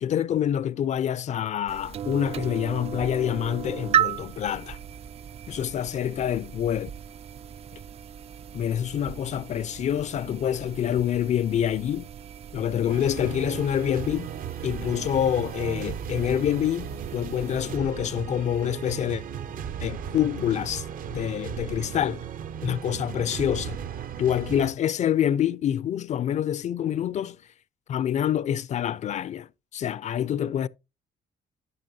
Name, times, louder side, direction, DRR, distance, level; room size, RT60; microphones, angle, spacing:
voice 1, 0.0-4.8 5.5-6.9 8.5-12.0 12.5-14.3 14.6-19.2 19.8-20.9 21.1-22.2 22.6-23.8 24.2-27.4 27.9-30.7, left 10 dB, 45° left, 0.4 m, -26 dB
sound 1, 1.7-17.8, right 9 dB, 40° right, 0.4 m, -35 dB
sound 2, 12.9-24.7, right 8 dB, 55° right, 0.7 m, -36 dB
10.5 x 8.3 x 2.7 m
cardioid pair, 110°, 17 cm